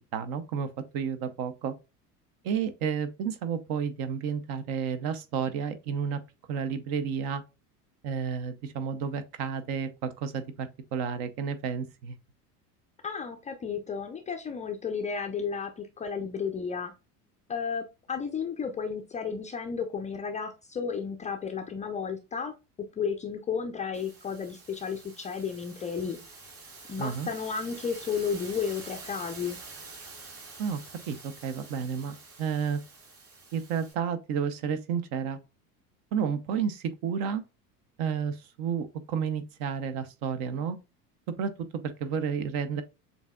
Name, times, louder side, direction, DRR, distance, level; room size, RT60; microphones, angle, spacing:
voice 1, 0.1-0.7 0.9-1.7 2.4-6.2 6.5-7.4 8.0-12.1 27.0-27.3 30.6-30.8 31.1-31.2 31.4-32.8 33.5-35.4 36.1-37.4 38.0-40.8 41.4-41.5 41.8-42.8, right 7 dB, 50° right, 0.8 m, -31 dB
voice 2, 13.0-16.9 17.5-22.5 23.0-26.2 26.9-29.6, left 6 dB, 15° left, 0.4 m, -33 dB
sound 1, 23.9-33.9, right 3 dB, 30° right, 2.3 m, -47 dB
7.0 x 2.7 x 2.3 m
figure-of-eight pair, 75°, 47 cm